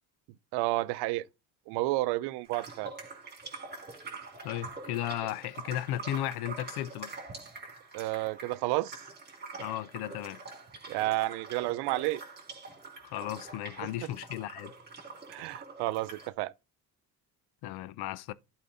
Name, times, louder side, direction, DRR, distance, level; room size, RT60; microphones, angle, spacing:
voice 1, 0.5-1.3 1.7-2.9 7.9-9.0 10.9-12.2 15.3-16.5, right 19 dB, 85° right, 0.6 m, -31 dB
sound 1, 2.5-16.3, right 4 dB, 25° right, 2.4 m, -45 dB
voice 2, 4.4-7.2 9.6-10.4 13.0-14.7 17.6-18.3, left 13 dB, 80° left, 0.7 m, -35 dB
11.0 x 4.5 x 4.0 m
cardioid pair, 125°, 38 cm